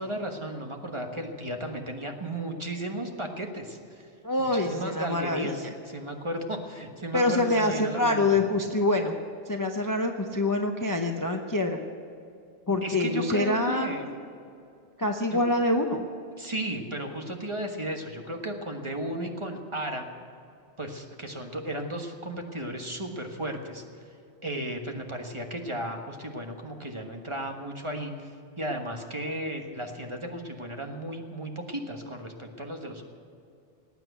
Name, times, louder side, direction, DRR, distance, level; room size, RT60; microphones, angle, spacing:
voice 1, 0.0-4.1 4.4-8.2 12.8-14.0 15.3-15.4 16.4-20.1 20.8-23.8 24.4-28.3 28.6-33.0, right 1 dB, 25° right, 3 dB, 1.4 m, -34 dB
voice 2, 4.2-5.5 7.1-9.2 9.5-11.8 12.7-14.1 15.0-16.0, left 2 dB, 20° left, 4 dB, 0.7 m, -25 dB
19.0 x 9.0 x 8.1 m, 2.5 s
omnidirectional pair, 1.2 m